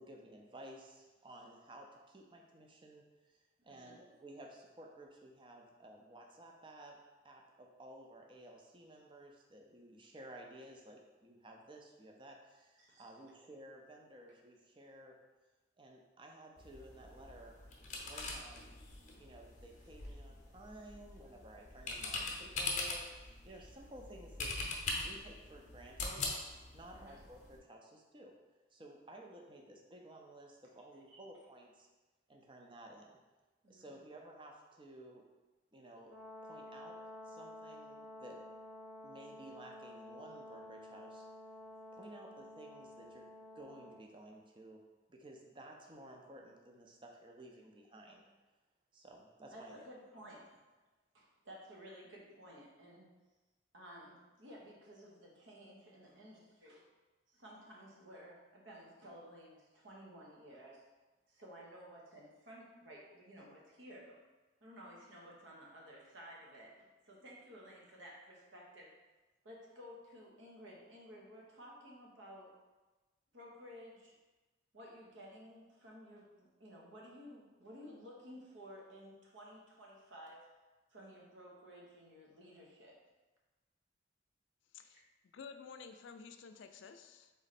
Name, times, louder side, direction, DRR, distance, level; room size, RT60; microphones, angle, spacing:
voice 1, 0.0-7.0 7.2-15.2 15.8-17.6 18.0-18.7 19.2-24.6 25.0-26.3 26.7-28.4 28.7-31.9 32.3-33.2 33.7-35.3 35.7-36.1 36.4-37.0 37.2-38.4 39.0-41.2 41.9-44.8 45.1-48.2 48.9-49.8, right 1 dB, 25° right, 0 dB, 0.5 m, -54 dB
voice 2, 12.8-13.1 19.2-19.3 26.9-27.2 31.1-31.2 33.6-33.8 49.5-50.6 51.1-53.1 53.7-56.9 57.3-60.8 61.3-64.2 64.6-68.9 69.4-72.5 73.3-74.1 74.7-80.4 80.9-83.0 84.8-85.0, equal, 85° right, -3 dB, 1.1 m, -54 dB
sound 1, 16.6-27.6, left 3 dB, 40° left, 0.7 m, -43 dB
Brass instrument, 36.0-44.0, left 1 dB, 50° right, 1.1 m, -51 dB
voice 3, 85.3-87.3, left 5 dB, 85° left, 8 dB, 0.3 m, -52 dB
3.9 x 3.1 x 4.1 m, 1.2 s
head